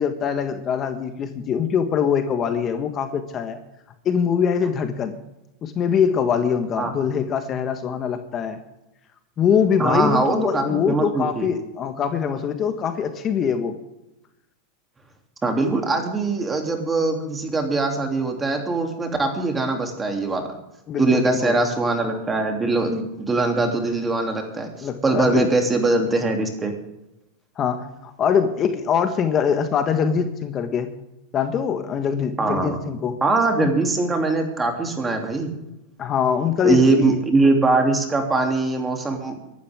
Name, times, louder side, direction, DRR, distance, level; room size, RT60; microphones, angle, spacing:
voice 1, 0.0-3.6 4.0-5.2 5.6-8.6 9.4-13.8 20.9-21.6 24.8-25.5 27.6-30.9 31.3-33.2 33.6-33.7 36.0-37.2, left 7 dB, 35° left, 7 dB, 1.4 m, -23 dB
voice 2, 9.8-11.5 15.4-20.4 21.0-26.7 32.4-32.8 33.2-35.5 36.6-39.4, right 3 dB, 15° right, 3 dB, 2.9 m, -22 dB
23.5 x 12.0 x 3.6 m, 0.93 s
supercardioid pair, 120°, 0 cm